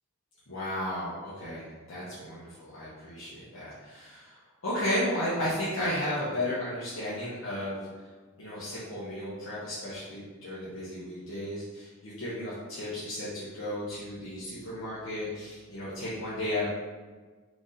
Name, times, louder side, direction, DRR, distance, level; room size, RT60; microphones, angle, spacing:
voice 1, 0.5-8.1 8.4-16.7, left 1 dB, 70° left, -9 dB, 1.0 m, -34 dB
4.6 x 2.6 x 4.0 m, 1.4 s
head